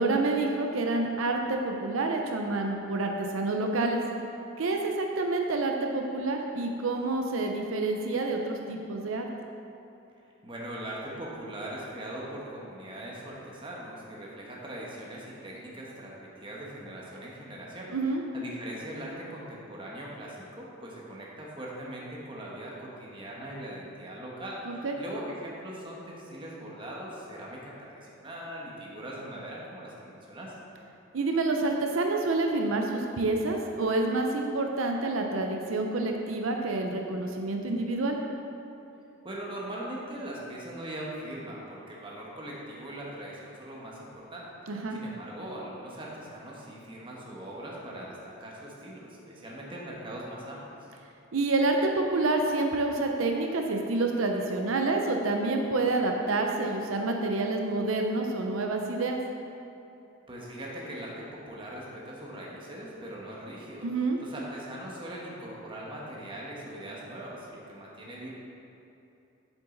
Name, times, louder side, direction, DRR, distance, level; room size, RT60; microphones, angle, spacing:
voice 1, 0.0-4.0 4.6-9.3 17.9-18.2 24.7-25.0 31.1-38.2 44.7-45.0 51.3-59.2 63.8-64.2, right 2 dB, 90° right, 2 dB, 0.6 m, -28 dB
voice 2, 10.4-17.9 18.3-30.5 39.2-50.6 60.3-68.3, right 1 dB, 25° right, -4 dB, 1.4 m, -41 dB
7.8 x 7.1 x 3.9 m, 2.8 s
head